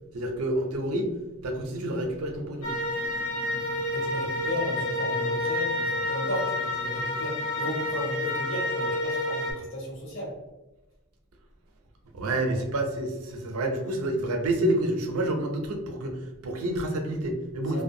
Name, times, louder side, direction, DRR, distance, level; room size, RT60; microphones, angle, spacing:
voice 1, 0.1-1.1 1.4-2.7 12.1-17.8, right 1 dB, 85° right, 4 dB, 0.5 m, -28 dB
sound 1, 2.6-9.5, left 1 dB, 85° left, 0.6 m, -29 dB
voice 2, 3.9-10.3 17.7-17.8, left 1 dB, 60° left, -3 dB, 0.9 m, -34 dB
2.5 x 2.2 x 2.6 m, 1.0 s
head